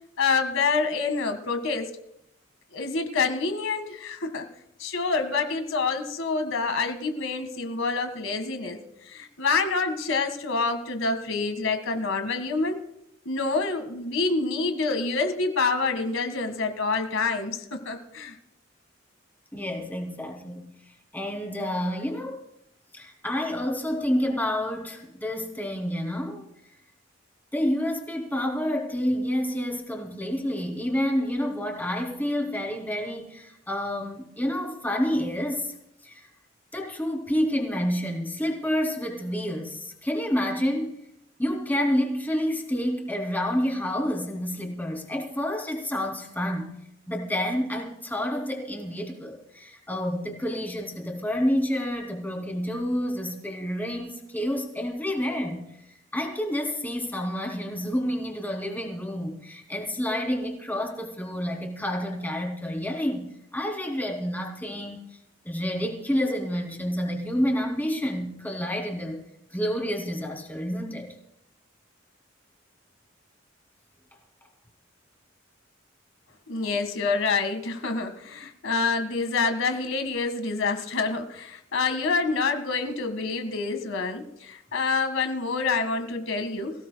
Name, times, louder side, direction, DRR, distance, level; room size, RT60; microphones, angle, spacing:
voice 1, 0.2-1.9 2.7-4.5 4.8-8.8 9.1-12.8 13.3-18.4 76.5-86.7, left 4 dB, 90° left, 7 dB, 1.9 m, -27 dB
voice 2, 19.5-20.7 21.1-22.4 22.9-26.5 27.5-35.8 36.0-36.3 36.7-41.0 41.4-46.7 47.1-65.1 65.4-69.2 69.5-71.1 76.7-76.8, equal, 10° left, 2 dB, 2.9 m, -29 dB
25.0 x 16.5 x 2.3 m, 0.80 s
head